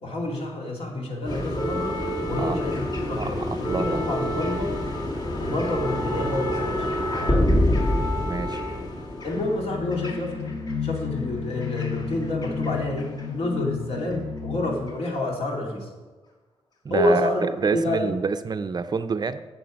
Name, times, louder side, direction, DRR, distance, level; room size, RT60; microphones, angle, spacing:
voice 1, 0.0-4.8 5.4-6.9 7.2-7.5 9.2-10.5 10.8-15.9 16.9-18.2, left 1 dB, 65° left, -1 dB, 2.6 m, -28 dB
sound 1, 1.3-10.7 11.6-12.7 13.0-13.2 14.1-14.2, left 1 dB, 40° left, 1.6 m, -27 dB
voice 2, 3.2-4.1 8.2-8.6 16.8-19.4, right 5 dB, 40° right, 10 dB, 0.4 m, -28 dB
sound 2, 9.3-14.9, left 6 dB, 85° left, 4.1 m, -32 dB
14.0 x 7.1 x 5.2 m, 1.3 s
wide cardioid pair, 175°, 11 cm